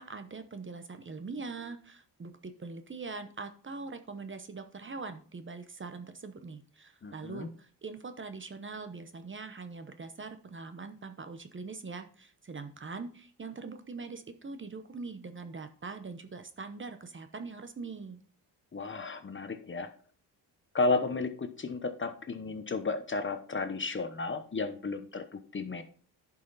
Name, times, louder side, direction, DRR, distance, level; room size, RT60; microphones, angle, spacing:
voice 1, 0.0-18.2, right 4 dB, 30° right, 9 dB, 0.9 m, -42 dB
voice 2, 7.0-7.5 18.7-19.9 20.7-25.8, left 3 dB, 30° left, 9 dB, 0.9 m, -33 dB
11.0 x 5.7 x 4.1 m, 0.44 s
cardioid pair, 105°, 42 cm